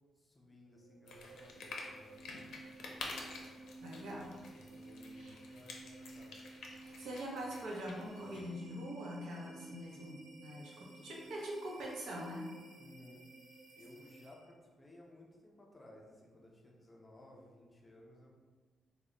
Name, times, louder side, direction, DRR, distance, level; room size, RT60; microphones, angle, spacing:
voice 1, 0.1-2.3 3.8-3.9 4.4-6.4 12.8-13.3 13.8-18.3, left 1 dB, 15° left, -2 dB, 0.4 m, -58 dB
sound 1, 0.7-14.6, right 2 dB, 45° right, 1.5 m, -55 dB
sound 2, 1.1-8.4, left 3 dB, 75° left, 0.5 m, -49 dB
voice 2, 3.8-4.3 5.1-5.3 6.8-12.5, equal, 70° right, -2 dB, 0.7 m, -43 dB
3.1 x 2.1 x 3.7 m, 1.4 s
wide cardioid pair, 165°, 0 cm